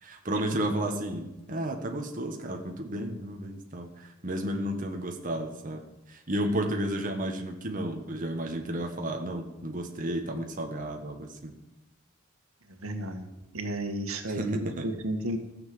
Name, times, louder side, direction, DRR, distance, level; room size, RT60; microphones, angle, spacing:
voice 1, 0.0-11.5 14.3-14.9, right 1 dB, 40° right, 3 dB, 1.5 m, -32 dB
voice 2, 12.8-13.3 13.5-15.4, right 1 dB, 90° right, 6 dB, 1.8 m, -32 dB
14.5 x 7.2 x 7.9 m, 1.0 s
head